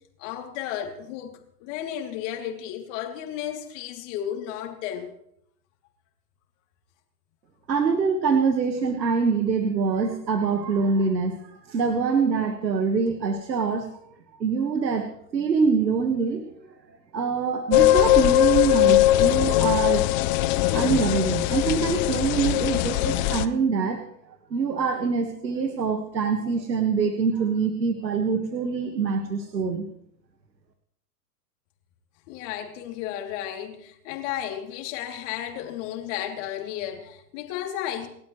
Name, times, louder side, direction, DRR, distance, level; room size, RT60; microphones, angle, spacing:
voice 1, 0.2-5.1 32.3-38.1, left 11 dB, 45° left, 3.1 m, -33 dB
voice 2, 7.7-11.3 11.7-13.9 14.4-16.5 17.1-20.0 20.6-24.0 24.5-29.9, right 5 dB, 85° right, 1.8 m, -24 dB
sound 1, 17.7-23.5, left 16 dB, 30° left, 0.5 m, -20 dB
29.0 x 12.0 x 3.2 m
hypercardioid pair, 120°, 50 cm